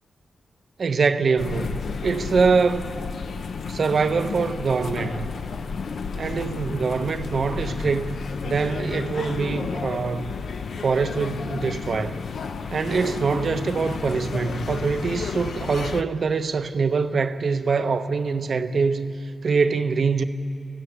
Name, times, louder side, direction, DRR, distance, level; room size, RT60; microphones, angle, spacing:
voice 1, 0.8-2.9 3.6-5.3 6.2-8.2 8.4-10.3 10.8-12.2 12.7-20.2, right 5 dB, 55° right, 0.8 m, -24 dB
sound 1, 1.4-16.0, left 5 dB, 75° left, 0.7 m, -32 dB
25.5 x 15.5 x 7.0 m
wide cardioid pair, 130°, 0 cm